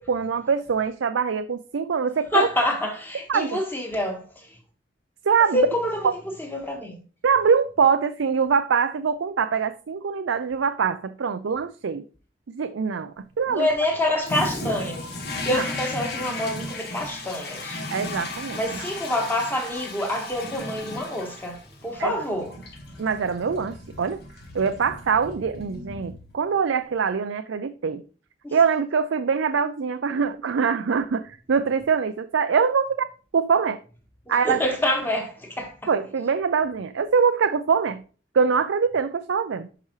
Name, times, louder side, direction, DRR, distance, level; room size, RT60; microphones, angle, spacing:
voice 1, 0.1-2.5 3.3-3.6 5.2-5.7 6.0-6.1 7.2-12.0 12.5-13.7 15.5-15.7 17.9-18.8 22.0-22.2 23.0-24.2 24.5-28.0 28.5-33.1 33.3-33.8 34.3-34.6 35.9-38.0 38.3-39.7, right 6 dB, 90° right, 0.5 m, -23 dB
voice 2, 2.3-4.5 5.5-7.0 13.5-15.1 15.4-17.8 18.5-22.5 28.4-28.6 34.3-35.9, left 1 dB, 10° left, 1.7 m, -27 dB
Toilet flush, 14.2-26.5, left 2 dB, 60° left, 1.6 m, -35 dB
11.0 x 4.9 x 3.2 m
head